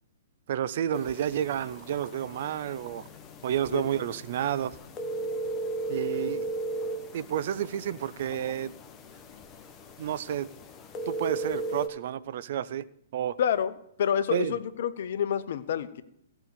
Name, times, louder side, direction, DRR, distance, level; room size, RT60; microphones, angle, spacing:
voice 1, 0.5-3.1 3.4-4.8 5.9-6.5 7.1-8.7 10.0-10.5 11.1-12.8 13.1-13.4 14.3-14.5, right 10 dB, 50° right, 0.5 m, -30 dB
sound 1, 0.9-11.9, right 2 dB, 20° left, 1.0 m, -37 dB
voice 2, 3.7-4.1 13.4-13.7 14.0-16.0, left 8 dB, 50° left, 0.7 m, -28 dB
15.5 x 5.7 x 6.7 m
figure-of-eight pair, 115°, 0 cm